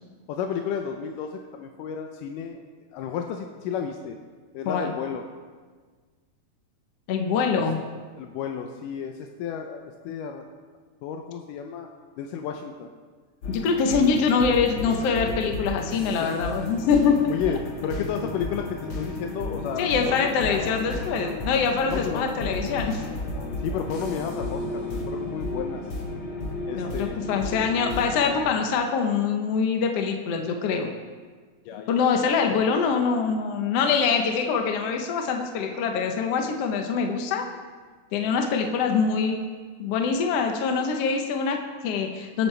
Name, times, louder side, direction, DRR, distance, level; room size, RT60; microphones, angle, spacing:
voice 1, 0.3-2.6 2.9-4.2 4.5-5.2 7.6-7.7 8.2-10.4 11.0-11.9 12.2-12.9 16.2-16.3 17.3-20.7 21.9-22.4 23.6-25.8 26.7-27.2 31.7-32.0, left 7 dB, 85° left, 4 dB, 2.3 m, -32 dB
voice 2, 7.1-7.8 13.5-17.3 19.8-23.0 26.7-30.9 31.9-37.4 38.1-39.4 39.8-42.5, left 5 dB, 65° left, 3 dB, 1.7 m, -24 dB
sound 1, 13.4-28.3, left 2 dB, 45° left, 2.5 m, -33 dB
23.0 x 9.1 x 3.4 m, 1.5 s
omnidirectional pair, 3.7 m